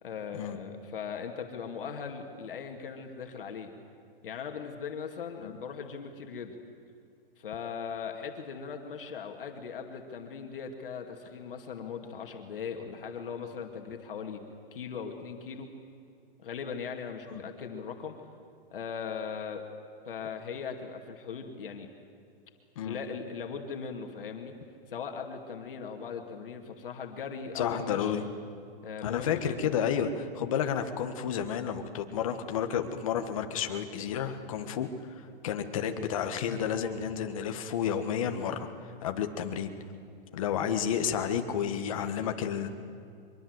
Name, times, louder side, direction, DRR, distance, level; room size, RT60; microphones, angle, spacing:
voice 1, 0.0-3.7 4.2-6.6 7.4-14.4 14.7-15.7 16.4-18.2 18.7-19.6 20.0-21.9 22.9-24.5 24.9-28.2 28.8-29.6 34.6-34.8, left 6 dB, 65° left, 3 dB, 2.5 m, -39 dB
voice 2, 27.6-28.2 29.0-34.9 35.1-38.7 39.0-39.7 40.3-42.7, left 8 dB, 35° left, 7 dB, 1.6 m, -31 dB
24.0 x 23.0 x 8.1 m, 2.4 s
hypercardioid pair, 175°, 29 cm